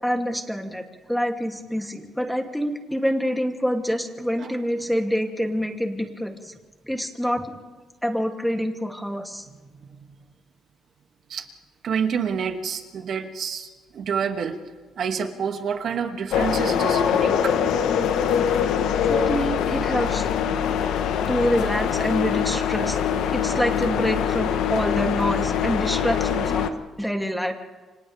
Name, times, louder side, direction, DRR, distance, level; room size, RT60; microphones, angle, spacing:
voice 1, 0.0-6.5 6.9-7.5 8.0-9.5 19.0-20.3 21.3-23.0 23.3-26.7 27.0-27.5, equal, ahead, 3 dB, 2.8 m, -26 dB
voice 2, 9.7-10.1 11.3-11.5 11.8-13.7 13.9-14.6 15.0-17.6, right 6 dB, 65° right, 5 dB, 2.3 m, -28 dB
sound 1, 16.3-26.7, left 8 dB, 85° left, 1.3 m, -23 dB
30.0 x 25.5 x 3.5 m, 1.3 s
cardioid pair, 90°, 0 cm